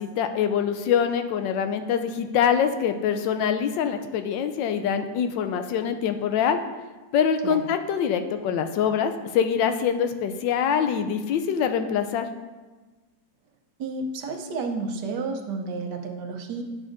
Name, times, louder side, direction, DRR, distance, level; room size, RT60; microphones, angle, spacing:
voice 1, 0.0-6.6 7.1-12.3, left 7 dB, 85° left, 8 dB, 1.3 m, -24 dB
voice 2, 13.8-16.6, right 3 dB, 70° right, 4 dB, 1.3 m, -31 dB
10.0 x 6.0 x 2.6 m, 1.3 s
omnidirectional pair, 1.9 m